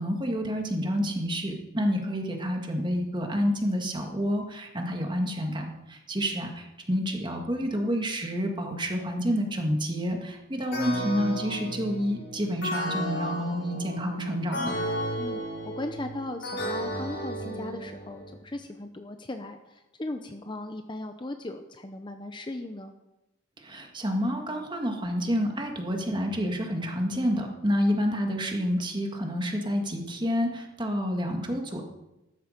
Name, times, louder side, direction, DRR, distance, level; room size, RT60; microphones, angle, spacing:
voice 1, 0.0-14.7 23.6-31.8, equal, 25° right, 3 dB, 1.9 m, -29 dB
sound 1, 10.7-18.4, equal, 60° left, 5.0 m, -34 dB
voice 2, 15.2-22.9, left 2 dB, 25° left, 6 dB, 0.7 m, -38 dB
14.0 x 13.0 x 5.2 m, 0.96 s
head